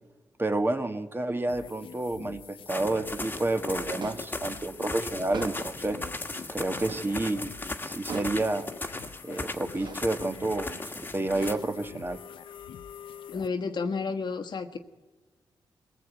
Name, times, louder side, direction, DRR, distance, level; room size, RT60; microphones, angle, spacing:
voice 1, 0.4-6.0 6.5-7.5 7.8-8.6 9.2-10.7 11.1-12.2, right 2 dB, 25° right, 8 dB, 1.3 m, -29 dB
sound 1, 1.5-13.5, left 8 dB, 85° left, 0.7 m, -46 dB
sound 2, 2.7-11.5, left 2 dB, 20° left, 1.4 m, -37 dB
sound 3, 4.0-4.4 5.3-5.8 6.8-7.2 8.1-8.5 9.7-10.1 11.3-11.9, right 5 dB, 60° right, 1.1 m, -40 dB
voice 2, 13.3-14.8, left 4 dB, 60° left, 7 dB, 1.4 m, -31 dB
21.5 x 15.0 x 8.2 m, 1.2 s
cardioid pair, 70°, 9 cm